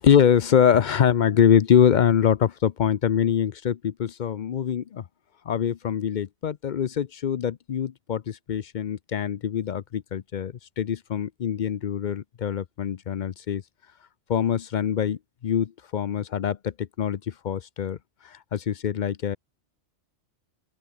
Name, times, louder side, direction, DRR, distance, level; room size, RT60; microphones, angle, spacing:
voice 1, 0.0-5.0 5.5-13.6 14.3-18.0 18.2-19.4, left 8 dB, 50° left, 0.6 m, -24 dB
open air
omnidirectional pair, 1.2 m